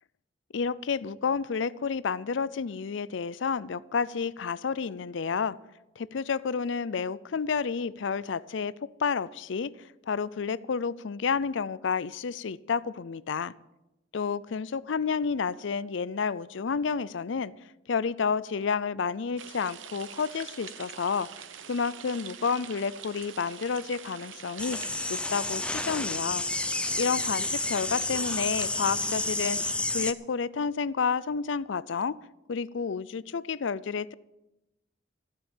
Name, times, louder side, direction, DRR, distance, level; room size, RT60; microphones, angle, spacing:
voice 1, 0.5-5.6 6.0-8.7 9.0-13.5 14.1-17.5 17.9-21.3 21.7-24.8 25.1-26.5 26.9-29.6 29.9-32.2 32.5-34.1, left 5 dB, 70° left, 19 dB, 0.5 m, -30 dB
sound 1, 19.4-29.7, right 8 dB, 75° right, 0.9 m, -45 dB
sound 2, 24.6-30.1, left 2 dB, 5° left, 0.4 m, -30 dB
14.5 x 8.6 x 7.4 m, 0.95 s
head